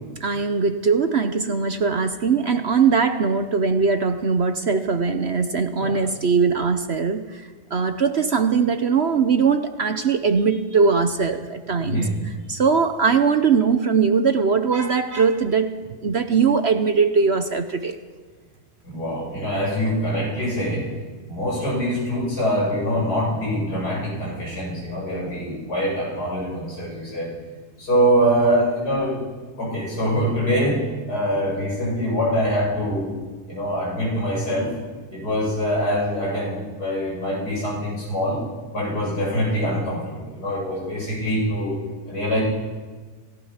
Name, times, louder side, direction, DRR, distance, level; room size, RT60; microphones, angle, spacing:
voice 1, 0.2-7.4 7.7-18.0, right 5 dB, 50° right, 9 dB, 1.0 m, -21 dB
voice 2, 11.8-12.2 18.8-20.9 21.3-27.3 27.8-29.2 29.6-30.8 31.1-33.2 33.5-34.7 35.1-38.4 38.7-41.8 42.1-42.4, equal, 80° left, -4 dB, 8.5 m, -24 dB
26.5 x 18.0 x 5.8 m, 1.4 s
omnidirectional pair, 1.7 m